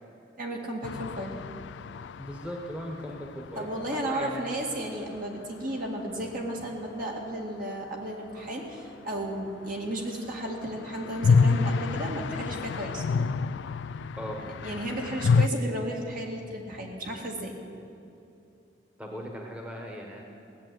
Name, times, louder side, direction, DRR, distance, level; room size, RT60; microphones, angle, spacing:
voice 1, 0.4-1.3 3.6-13.0 14.4-17.6, right 1 dB, 50° right, 0 dB, 2.0 m, -34 dB
sound 1, 0.8-4.6 4.9-5.0 5.2-5.3 10.3-15.5, left 5 dB, 70° left, 0.3 m, -28 dB
voice 2, 2.1-4.5 14.1-14.4 19.0-20.2, equal, 5° right, 0 dB, 1.3 m, -38 dB
17.0 x 7.5 x 9.4 m, 2.7 s
head